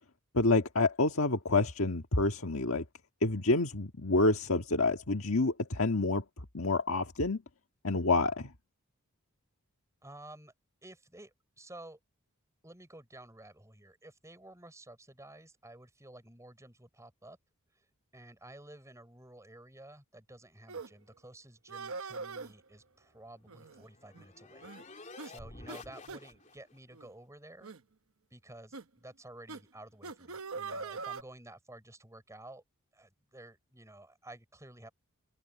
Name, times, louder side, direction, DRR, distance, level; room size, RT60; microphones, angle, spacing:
voice 1, 0.3-2.8 3.2-6.2 6.5-7.4 7.8-8.5, left 2 dB, 65° left, 1.7 m, -28 dB
voice 2, 10.0-10.5 10.8-12.0 12.6-17.4 17.7-17.8 18.1-27.7 28.3-32.6 32.9-34.9, right 1 dB, 15° right, 6.2 m, -52 dB
sound 1, 20.7-20.9 21.7-22.5 23.5-23.8 24.1-24.2 24.6-24.8 25.2-25.3 25.7-25.8 26.1-26.2 26.9-27.1 27.6-27.8 28.7-28.8 29.5-29.6 30.0-31.2, right 4 dB, 70° right, 1.0 m, -42 dB
sound 2, 23.2-26.8, left 3 dB, 35° left, 3.5 m, -51 dB
open air
head